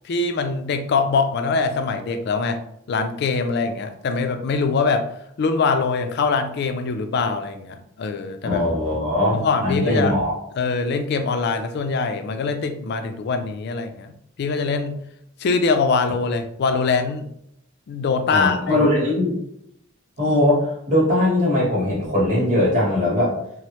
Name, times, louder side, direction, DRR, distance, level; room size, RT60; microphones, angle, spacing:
voice 1, 0.0-2.6 2.9-5.0 5.4-8.6 9.3-10.1 10.6-14.1 14.4-15.0 15.4-17.3 17.9-18.9, left 4 dB, 55° left, 7 dB, 0.3 m, -23 dB
voice 2, 8.4-10.3 18.3-19.4 20.2-23.4, left 1 dB, 40° right, -6 dB, 1.0 m, -20 dB
3.0 x 2.0 x 2.8 m, 0.73 s
head